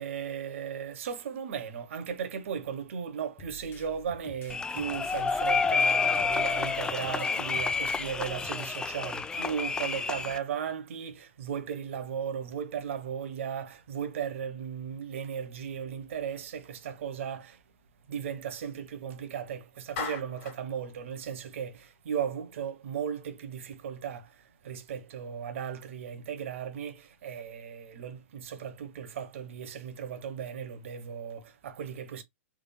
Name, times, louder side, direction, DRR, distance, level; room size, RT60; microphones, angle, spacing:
voice 1, 0.0-17.6 18.1-32.2, right 8 dB, 65° right, 0.9 m, -36 dB
sound 1, 3.4-8.8, left 7 dB, 25° left, 1.0 m, -50 dB
sound 2, 4.5-10.4, left 4 dB, 10° left, 0.4 m, -29 dB
Clapping, 20.0-20.6, left 6 dB, 50° left, 2.0 m, -36 dB
3.6 x 3.4 x 2.2 m
hypercardioid pair, 125°, 8 cm